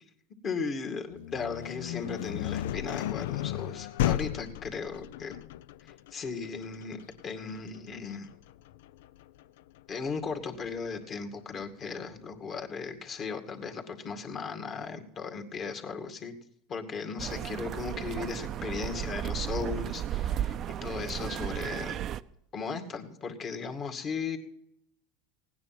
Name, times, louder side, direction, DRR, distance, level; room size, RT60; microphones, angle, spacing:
voice 1, 0.4-5.4 5.8-8.3 9.9-16.4 16.7-22.0 22.5-24.4, left 5 dB, 35° left, 4 dB, 2.2 m, -37 dB
sound 1, 1.1-10.9, left 13 dB, 75° left, 0.4 m, -35 dB
sound 2, 17.2-22.2, right 10 dB, 40° right, 0.5 m, -34 dB
17.0 x 9.7 x 6.0 m, 0.80 s
supercardioid pair, 105°, 0 cm